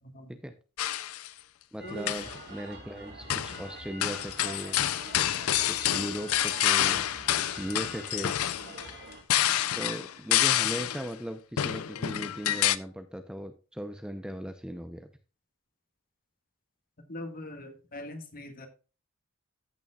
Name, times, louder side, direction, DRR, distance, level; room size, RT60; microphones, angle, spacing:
voice 1, 0.0-0.3 1.8-2.1 5.5-5.6 17.1-18.7, left 1 dB, 45° left, 6 dB, 1.7 m, -42 dB
sound 1, 0.8-1.3 1.9-2.4 3.3-3.6 4.0-11.1 11.6-12.8, left 12 dB, 75° left, 0.5 m, -28 dB
voice 2, 1.7-4.8 5.7-7.1 7.5-8.4 9.8-15.1, equal, 5° right, 7 dB, 0.7 m, -38 dB
sound 2, 1.8-9.2, right 2 dB, 50° right, 3.5 m, -46 dB
14.0 x 6.8 x 2.4 m, 0.34 s
head